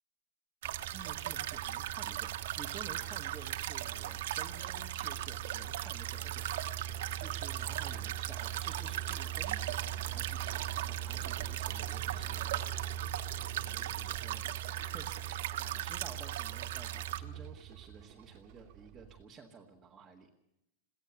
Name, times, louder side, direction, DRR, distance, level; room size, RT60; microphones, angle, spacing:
sound 1, 0.6-19.2, right 10 dB, 40° right, 1.7 m, -42 dB
sound 2, 0.6-17.2, right 13 dB, 70° right, 1.3 m, -38 dB
voice 1, 0.9-6.5 7.2-13.2 13.6-20.3, right 5 dB, 15° right, -1 dB, 1.7 m, -53 dB
22.5 x 16.5 x 7.2 m, 0.83 s
supercardioid pair, 165°, 0 cm